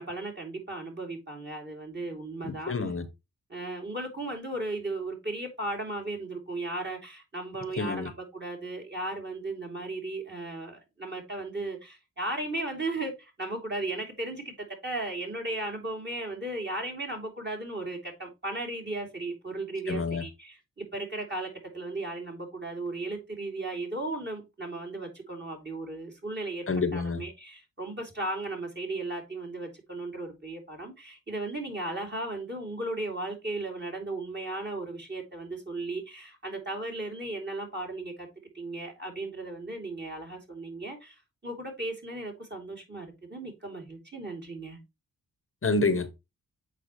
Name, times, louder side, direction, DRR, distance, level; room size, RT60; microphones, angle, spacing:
voice 1, 0.0-2.7 3.5-14.5 14.8-26.7 26.9-38.3 38.5-44.8, right 2 dB, 30° right, 2.9 m, -36 dB
voice 2, 2.4-3.1 7.8-8.1 19.9-20.2 26.7-27.2 45.6-46.1, left 3 dB, 35° left, 1.1 m, -28 dB
8.3 x 4.5 x 3.0 m
cardioid pair, 65°, 36 cm